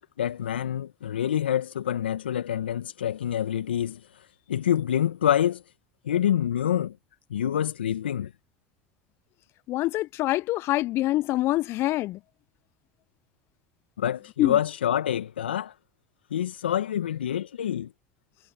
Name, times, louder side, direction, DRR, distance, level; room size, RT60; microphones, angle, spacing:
voice 1, 0.2-4.0 4.5-5.6 6.1-7.0 7.3-8.3 14.0-15.7 16.3-17.9, left 10 dB, 80° left, 2.2 m, -26 dB
voice 2, 9.7-12.2 14.4-14.6, left 16 dB, 50° left, 0.9 m, -25 dB
hypercardioid pair, 75°, 6 cm